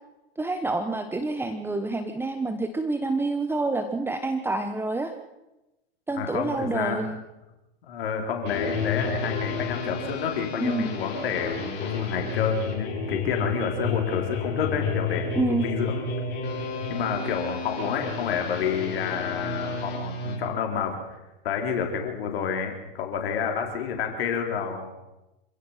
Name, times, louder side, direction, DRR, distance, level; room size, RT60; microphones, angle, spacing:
voice 1, 0.4-5.1 6.1-7.2 10.6-10.9 15.4-15.7, right 2 dB, 5° right, 8 dB, 1.3 m, -27 dB
voice 2, 6.1-7.0 7.9-16.1 16.9-24.9, left 6 dB, 70° left, 3 dB, 4.1 m, -29 dB
sound 1, 8.4-20.4, left 4 dB, 35° left, 7.5 m, -31 dB
27.0 x 16.5 x 5.8 m, 0.99 s
hypercardioid pair, 110°, 31 cm